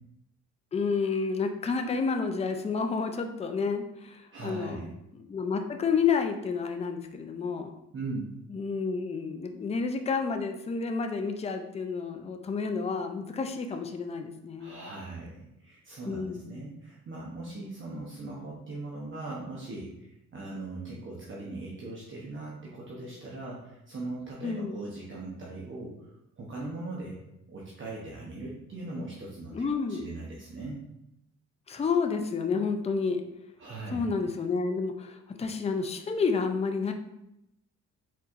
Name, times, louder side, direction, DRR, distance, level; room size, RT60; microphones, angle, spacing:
voice 1, 0.7-4.8 5.1-7.7 8.5-14.9 16.0-16.5 24.4-24.8 29.5-30.0 31.7-33.2 33.9-36.9, left 5 dB, 20° left, 5 dB, 0.5 m, -30 dB
voice 2, 4.3-4.9 7.9-8.3 14.6-27.2 27.5-29.5 29.9-30.8 33.6-34.0, right 2 dB, 40° right, -4 dB, 0.9 m, -39 dB
4.3 x 4.1 x 2.5 m, 0.84 s
cardioid pair, 90°, 30 cm